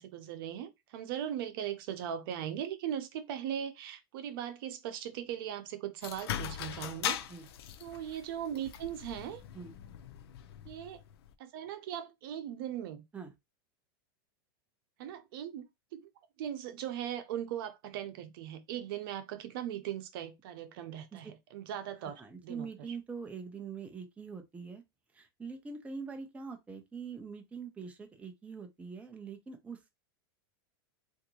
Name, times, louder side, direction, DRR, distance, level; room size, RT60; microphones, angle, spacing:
voice 1, 0.0-7.2 7.8-9.4 10.7-11.0 11.4-13.0 15.0-16.0 16.4-22.7, right 10 dB, 65° right, 0.8 m, -39 dB
sound 1, 6.0-11.3, left 10 dB, 80° left, 0.5 m, -40 dB
voice 2, 22.1-24.8 25.1-29.9, right 5 dB, 10° right, 0.6 m, -44 dB
3.5 x 2.6 x 3.0 m
supercardioid pair, 140°, 13 cm